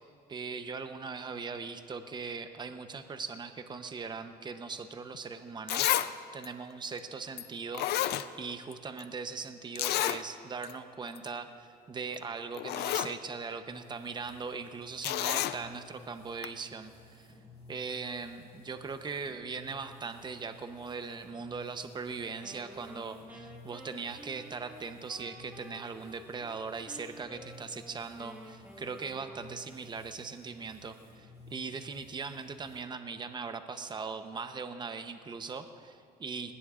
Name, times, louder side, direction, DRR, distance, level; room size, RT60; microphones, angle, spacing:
voice 1, 0.3-17.3 17.7-36.5, right 5 dB, 25° right, 8 dB, 0.8 m, -40 dB
Zipper (clothing), 5.1-5.2 5.7-6.1 6.4-6.5 7.4-7.5 7.7-8.7 9.0-9.1 9.8-10.2 10.6-10.7 11.1-11.3 12.1-12.2 12.5-13.1 15.0-15.6 16.4-16.5, left 13 dB, 80° left, 0.5 m, -30 dB
sound 1, 13.7-32.8, left 1 dB, 40° left, 4.4 m, -55 dB
Wind instrument woodwind instrument, 22.4-26.6 26.9-29.8, right 1 dB, 10° right, 1.6 m, -51 dB
19.5 x 18.0 x 2.5 m, 2.3 s
cardioid pair, 125°, 17 cm